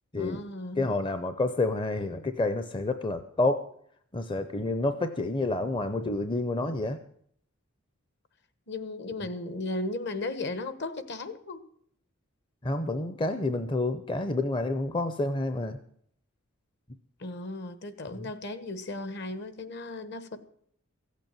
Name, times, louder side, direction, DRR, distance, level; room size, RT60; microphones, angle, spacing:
voice 1, 0.1-0.9 8.7-11.6 17.2-20.4, left 2 dB, 55° left, 1.3 m, -36 dB
voice 2, 0.8-3.6 4.1-7.0 12.6-15.8, left 2 dB, 25° left, 0.6 m, -29 dB
15.5 x 8.3 x 9.0 m
head